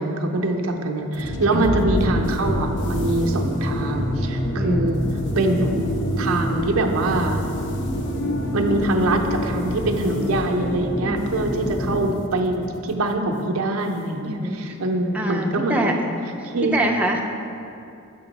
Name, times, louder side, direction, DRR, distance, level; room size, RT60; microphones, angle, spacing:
voice 1, 0.0-5.0 5.4-5.8 6.2-7.4 8.5-15.9 16.4-16.7, right 2 dB, 85° right, 3 dB, 0.6 m, -24 dB
sound 1, 1.1-11.6, left 1 dB, 60° left, 0.5 m, -31 dB
sound 2, 1.2-12.1, equal, 90° left, 1.2 m, -27 dB
voice 2, 4.6-4.9 11.0-11.2 11.5-11.9 14.3-14.7 15.1-15.9 16.7-17.2, right 1 dB, 5° right, 0 dB, 0.4 m, -25 dB
6.5 x 5.2 x 4.0 m, 2.6 s
head